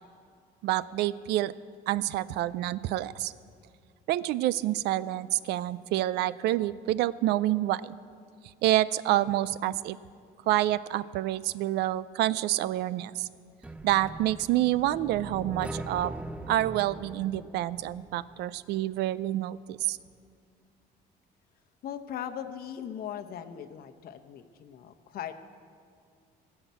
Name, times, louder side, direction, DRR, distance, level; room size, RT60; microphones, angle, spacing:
voice 1, 0.6-1.5 1.9-3.3 4.1-8.0 8.6-10.0 10.5-13.3 13.8-16.1 16.5-20.0, right 14 dB, 80° right, 18 dB, 0.4 m, -28 dB
sound 1, 13.6-18.6, right 1 dB, 5° right, 0.5 m, -41 dB
voice 2, 21.8-25.4, left 9 dB, 65° left, 8 dB, 0.9 m, -39 dB
16.5 x 5.9 x 8.1 m, 2.2 s
cardioid pair, 110°, 17 cm